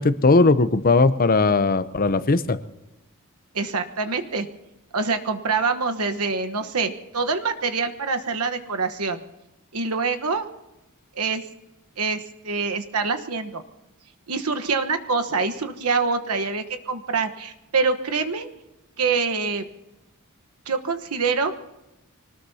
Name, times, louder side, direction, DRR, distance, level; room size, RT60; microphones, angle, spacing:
voice 1, 0.0-2.6, left 3 dB, 40° left, 13 dB, 0.7 m, -18 dB
voice 2, 3.5-4.5 4.9-9.2 9.7-10.5 11.1-11.4 12.0-13.6 14.3-18.5 19.0-19.6 20.7-21.5, right 4 dB, 80° right, 7 dB, 1.2 m, -25 dB
24.5 x 19.5 x 2.8 m, 0.99 s
head